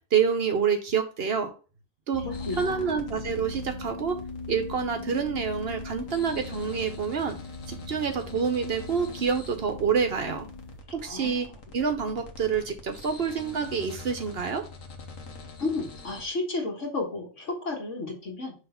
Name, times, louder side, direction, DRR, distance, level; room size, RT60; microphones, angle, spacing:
voice 1, 0.1-1.5 2.1-2.2 2.6-4.2 4.5-7.4 7.7-10.5 10.9-14.6, right 6 dB, 55° right, 7 dB, 0.9 m, -27 dB
sound 1, 2.1-10.8, left 3 dB, 30° left, 0.8 m, -40 dB
voice 2, 2.2-3.0 11.0-11.5 15.6-18.6, left 3 dB, 70° left, -1 dB, 2.1 m, -33 dB
sound 2, 2.3-16.3, left 3 dB, 90° left, 1.5 m, -45 dB
5.6 x 3.4 x 5.5 m, 0.36 s
omnidirectional pair, 1.3 m